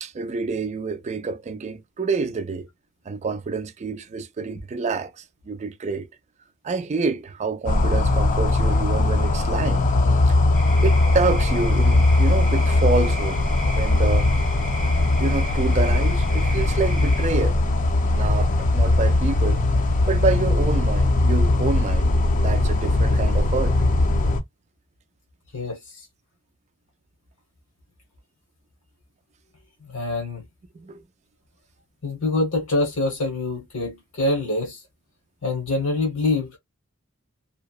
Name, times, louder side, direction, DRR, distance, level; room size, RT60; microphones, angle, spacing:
voice 1, 0.0-2.7 3.1-6.1 6.6-9.8 10.3-10.4 10.8-13.4 13.8-14.3 15.2-17.6 18.1-19.6 20.0-22.1 22.4-23.8 30.7-31.0, right 4 dB, 30° right, 0.3 m, -27 dB
sound 1, 7.7-24.4, left 2 dB, 40° left, 0.5 m, -20 dB
sound 2, 10.5-17.3, right 2 dB, ahead, 0.6 m, -37 dB
voice 2, 25.5-26.1 29.8-30.4 32.0-34.8 35.4-36.5, left 2 dB, 80° left, 1.0 m, -25 dB
2.8 x 2.0 x 2.3 m
head